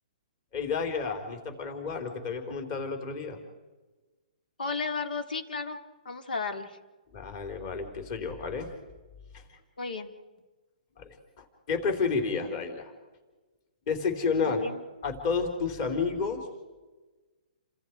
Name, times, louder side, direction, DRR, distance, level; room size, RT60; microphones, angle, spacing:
voice 1, 0.5-3.4 7.1-8.7 9.3-9.4 11.0-12.9 13.9-14.6 15.0-16.5, left 5 dB, 35° left, 5 dB, 4.2 m, -31 dB
voice 2, 4.6-5.8 6.0-6.8 9.8-10.1 14.5-14.8, left 4 dB, 90° left, 6 dB, 3.1 m, -33 dB
30.0 x 26.0 x 4.8 m, 1.2 s
hypercardioid pair, 160°, 5 cm